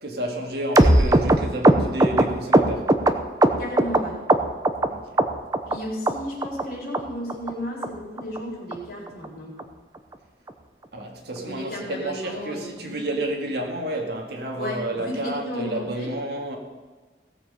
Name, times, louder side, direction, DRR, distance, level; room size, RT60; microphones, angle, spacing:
voice 1, 0.0-3.0 4.9-5.3 10.9-16.6, right 1 dB, 65° right, 2.1 m, -30 dB
sound 1, 0.7-4.0 4.3-4.9 5.2-5.8 6.1-6.2 6.4-6.6 6.9-7.0 7.3-7.5 7.8-7.9 8.2-8.4 8.7-8.8 9.1-9.3 9.6-9.7 9.9-10.1 10.5-10.6, right 1 dB, 20° right, 0.7 m, -18 dB
voice 2, 3.6-4.2 5.7-9.5 11.5-13.0 14.5-16.1, equal, 55° left, 4.4 m, -33 dB
17.0 x 7.5 x 5.6 m
head